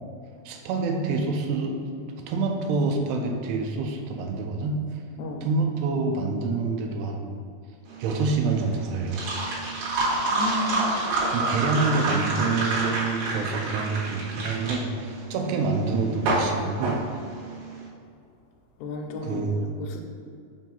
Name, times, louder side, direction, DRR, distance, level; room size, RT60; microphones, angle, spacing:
voice 1, 0.5-1.8 2.3-4.8 5.4-7.3 8.0-9.3 11.3-17.0 19.2-19.6, right 3 dB, 85° right, 3 dB, 2.6 m, -27 dB
sound 1, 7.9-17.7, right 2 dB, 65° right, 3.1 m, -28 dB
voice 2, 10.3-10.9 18.8-19.4 19.8-20.0, left 2 dB, 90° left, 3 dB, 2.8 m, -32 dB
7.3 x 2.7 x 5.5 m, 2.4 s
omnidirectional pair, 5.0 m